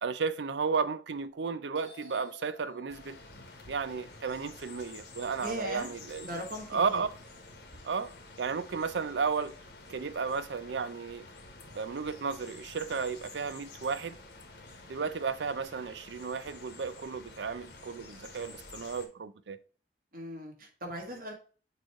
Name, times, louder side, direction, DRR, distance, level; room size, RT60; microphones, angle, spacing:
voice 1, 0.0-3.2 3.7-6.3 6.7-7.1 7.8-9.6 9.9-11.3 11.7-14.2 14.9-19.6, right 5 dB, 70° right, 0.5 m, -33 dB
Doorbell, 1.3-1.4 1.7-5.9 6.2-7.8, left 3 dB, 90° right, 1.8 m, -56 dB
sound 1, 2.9-19.1, left 3 dB, 60° left, 1.3 m, -50 dB
voice 2, 5.4-5.9 6.2-7.0 20.1-21.3, equal, 50° right, 1.7 m, -39 dB
6.6 x 3.1 x 4.6 m
head